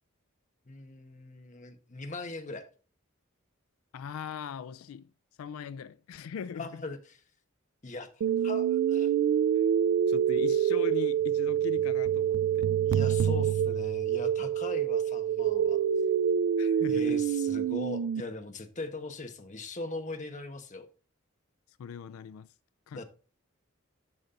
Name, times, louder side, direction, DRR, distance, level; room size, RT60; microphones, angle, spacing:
voice 1, 0.7-2.7 6.6-7.2 7.8-8.1 8.4-9.1 12.8-15.8 16.9-20.9 22.9-23.0, left 2 dB, 35° left, 1.0 m, -39 dB
voice 2, 3.9-5.1 5.4-6.8 10.1-12.7 16.6-17.2 21.8-22.5 22.9-23.0, left 7 dB, 80° left, 0.3 m, -40 dB
sound 1, 8.2-18.2, right 9 dB, 85° right, 0.3 m, -26 dB
11.0 x 5.3 x 2.5 m
head